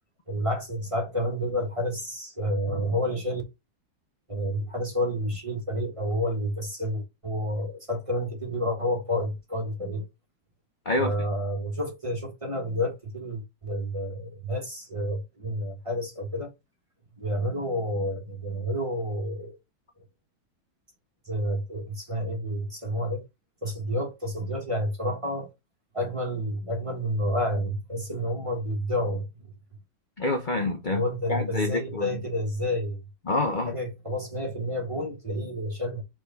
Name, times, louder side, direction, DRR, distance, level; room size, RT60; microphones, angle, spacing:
voice 1, 0.3-3.4 4.3-10.1 11.0-16.5 17.2-19.6 21.2-23.2 23.6-25.5 25.9-29.5 30.9-33.0 33.7-36.0, equal, 20° right, 1.4 m, -29 dB
voice 2, 30.2-31.0 31.3-32.1 33.3-33.8, left 2 dB, 40° left, 0.6 m, -27 dB
4.9 x 3.7 x 5.2 m
omnidirectional pair, 2.2 m